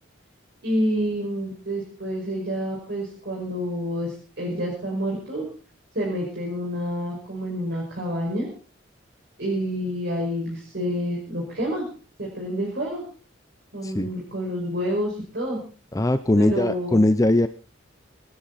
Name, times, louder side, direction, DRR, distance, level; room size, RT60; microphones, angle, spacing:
voice 1, 0.6-5.4 5.9-8.5 9.4-11.9 12.3-13.0 13.7-15.6 16.4-17.0, equal, 55° right, -2 dB, 5.7 m, -28 dB
voice 2, 15.9-17.5, left 1 dB, 15° left, 11 dB, 0.6 m, -20 dB
26.0 x 10.5 x 4.2 m, 0.39 s
head